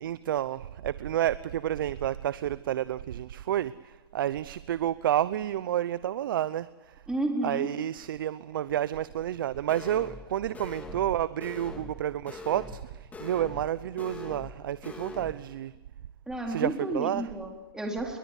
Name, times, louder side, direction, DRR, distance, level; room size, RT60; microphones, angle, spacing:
voice 1, 0.0-6.7 7.4-12.9 13.2-15.7 16.5-17.3, right 11 dB, 65° right, 0.8 m, -30 dB
voice 2, 7.1-7.7 16.3-18.2, right 1 dB, 5° right, 3.9 m, -32 dB
sound 1, 9.7-10.3 10.5-11.1 11.4-12.0 12.3-12.8 13.1-13.7 14.0-14.5 14.8-15.3, left 3 dB, 15° left, 3.9 m, -42 dB
27.5 x 23.0 x 8.3 m
hypercardioid pair, 135°, 12 cm